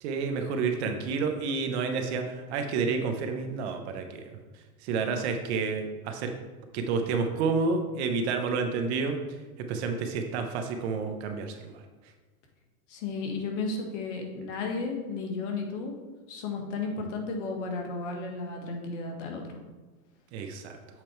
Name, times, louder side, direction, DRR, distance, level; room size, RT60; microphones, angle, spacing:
voice 1, 0.0-4.4 4.8-6.3 6.7-9.2 9.6-11.8 20.3-20.8, right 4 dB, 45° right, 5 dB, 0.9 m, -30 dB
voice 2, 12.9-16.0 16.3-19.6, left 3 dB, 50° left, 2 dB, 1.6 m, -33 dB
7.7 x 4.4 x 4.5 m, 1.2 s
hypercardioid pair, 135°, 46 cm